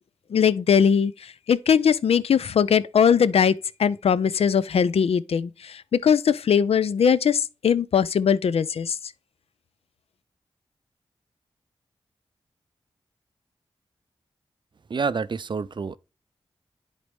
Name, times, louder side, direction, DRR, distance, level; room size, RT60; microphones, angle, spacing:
voice 1, 0.3-1.1 1.5-9.0, left 7 dB, 75° left, 0.4 m, -20 dB
voice 2, 14.9-16.0, right 5 dB, 50° right, 0.4 m, -28 dB
10.0 x 4.1 x 3.4 m
cardioid pair, 45°, 10 cm